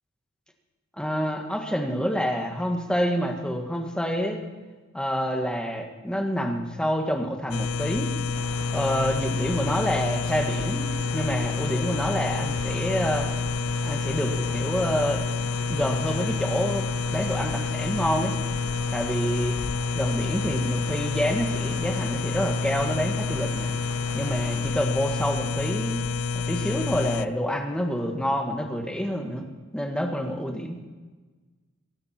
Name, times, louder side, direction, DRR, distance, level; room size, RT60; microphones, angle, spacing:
voice 1, 1.0-4.4 4.9-8.1 8.7-13.3 13.8-15.2 15.7-18.4 18.9-19.6 19.9-23.7 24.1-26.0 26.3-29.5 29.7-30.8, equal, 5° left, 3 dB, 1.6 m, -27 dB
sound 1, 7.5-27.3, left 4 dB, 85° left, 0.5 m, -28 dB
sound 2, 8.3-24.7, right 1 dB, 55° right, 1.7 m, -40 dB
23.0 x 11.0 x 4.4 m, 1.3 s
head